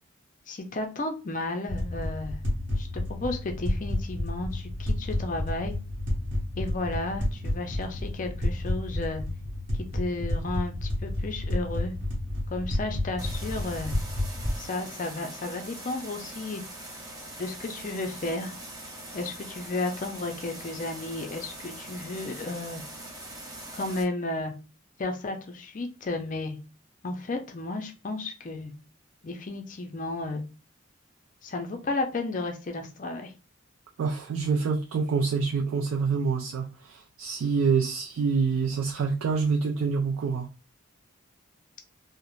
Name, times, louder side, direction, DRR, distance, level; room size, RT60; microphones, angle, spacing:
voice 1, 0.5-2.4 2.8-5.7 6.6-9.2 9.7-11.9 12.5-14.0 14.6-16.6 17.4-18.5 19.1-22.8 23.7-24.5 25.0-26.6 27.0-28.7 29.2-30.4 31.4-33.3, left 2 dB, 40° left, 0.4 m, -33 dB
sound 1, 1.7-14.6, left 1 dB, 55° right, 0.9 m, -30 dB
sound 2, 13.2-24.0, right 1 dB, 15° right, 0.5 m, -42 dB
voice 2, 34.0-40.5, right 5 dB, 80° right, 0.3 m, -26 dB
2.4 x 2.0 x 3.0 m
head